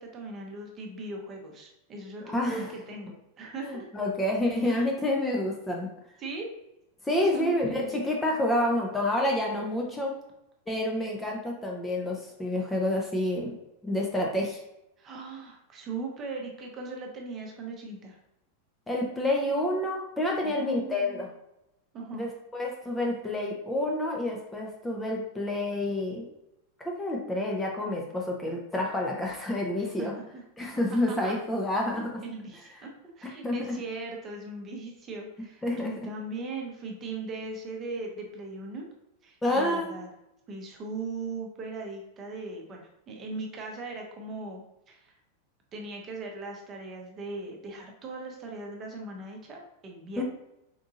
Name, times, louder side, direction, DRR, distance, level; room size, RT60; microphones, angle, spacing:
voice 1, 0.0-4.1 4.6-4.9 6.2-6.5 7.3-7.9 15.0-18.2 20.4-21.3 21.9-22.3 30.0-30.4 30.9-31.3 31.9-32.9 33.2-38.9 39.2-40.1 40.5-45.1 45.7-50.2, right 3 dB, 30° right, 1 dB, 0.8 m, -39 dB
voice 2, 2.2-2.7 3.6-5.9 7.0-10.1 10.7-13.6 13.8-14.6 18.9-21.3 22.1-26.3 26.8-30.1 30.6-32.2 33.4-33.8 35.6-36.0 39.4-40.0 50.2-50.3, left 1 dB, 10° left, -1 dB, 0.6 m, -28 dB
3.9 x 3.6 x 2.4 m, 0.85 s
figure-of-eight pair, 90°, 0 cm